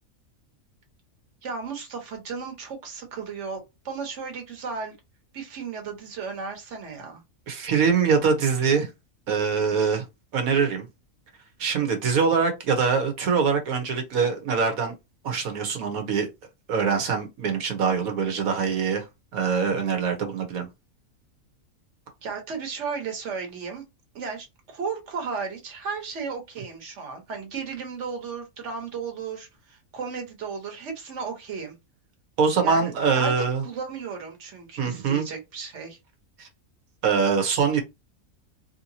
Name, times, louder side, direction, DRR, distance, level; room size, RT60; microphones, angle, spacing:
voice 1, 1.4-4.9 5.3-7.2 22.2-23.8 24.1-31.7 32.6-33.3 33.6-36.0, right 5 dB, 60° right, 1.3 m, -34 dB
voice 2, 7.5-8.9 9.3-10.0 10.3-10.8 11.6-14.9 15.2-16.3 16.7-19.0 19.3-20.7 32.4-33.6 34.8-35.2 36.4-36.5 37.0-37.8, right 5 dB, 90° right, 1.4 m, -23 dB
3.3 x 2.9 x 2.7 m
omnidirectional pair, 1.4 m